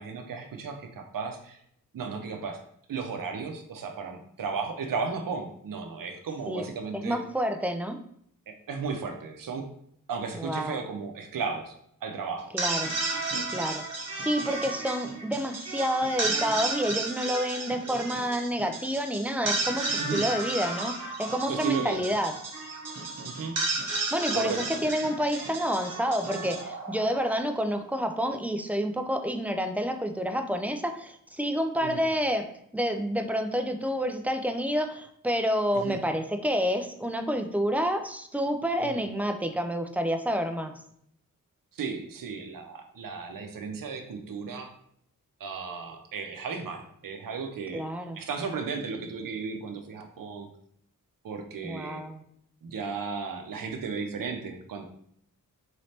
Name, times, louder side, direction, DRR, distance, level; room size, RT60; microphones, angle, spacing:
voice 1, 0.0-1.6 1.9-2.6 2.9-7.2 8.5-9.7 10.1-11.7 12.0-12.5 20.0-20.3 21.5-22.0 23.2-23.6 24.3-24.8 31.8-32.0 35.7-36.0 38.8-39.0 41.7-44.7 45.4-47.8 48.1-50.5 51.2-52.0 52.6-54.8, right 5 dB, 75° right, 5 dB, 0.7 m, -35 dB
voice 2, 6.9-8.0 10.3-10.8 12.5-12.9 13.5-22.3 23.9-32.4 32.7-40.7 47.7-48.2 51.6-52.2, equal, 5° right, 6 dB, 0.3 m, -29 dB
sound 1, 12.4-27.6, right 3 dB, 50° right, 1.0 m, -33 dB
4.1 x 3.2 x 2.8 m, 0.69 s
wide cardioid pair, 85°, 34 cm